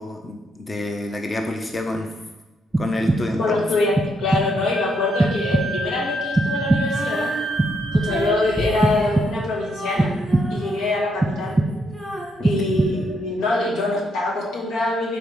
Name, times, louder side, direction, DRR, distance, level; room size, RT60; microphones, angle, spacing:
voice 1, 0.0-2.1 2.8-3.6, left 1 dB, 25° left, 3 dB, 0.7 m, -28 dB
sound 1, 2.7-3.5 4.0-4.7 5.2-6.0 6.3-7.2 7.6-8.4 8.8-9.6 10.0-10.8 11.2-12.0 12.4-13.2, right 2 dB, 20° right, 0.4 m, -23 dB
voice 2, 3.4-7.3 7.9-10.1 10.5-11.6 12.4-15.2, left 2 dB, 85° left, -2 dB, 1.4 m, -24 dB
Wind instrument woodwind instrument, 4.7-8.7, right 2 dB, 65° left, 1.6 m, -30 dB
Female singing, 6.7-13.8, equal, 5° left, 2.0 m, -33 dB
4.6 x 4.2 x 5.5 m, 1.1 s
cardioid pair, 90°, 0 cm